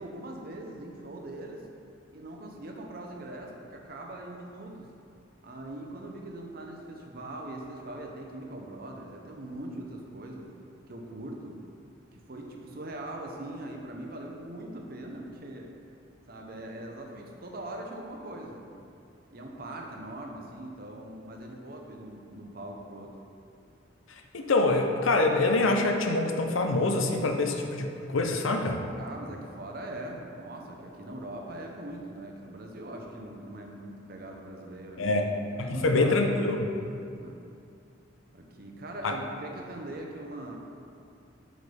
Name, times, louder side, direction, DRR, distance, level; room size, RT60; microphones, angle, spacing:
voice 1, 0.0-1.7 2.1-4.9 5.4-10.5 10.9-11.6 12.1-15.7 16.3-18.7 19.3-23.1 29.0-36.6 37.2-37.4 38.3-40.6, right 1 dB, 50° right, 1 dB, 0.8 m, -41 dB
voice 2, 24.1-28.8 35.0-36.7 39.0-39.1, left 2 dB, 90° left, 3 dB, 0.6 m, -25 dB
7.9 x 5.1 x 3.4 m, 2.5 s
head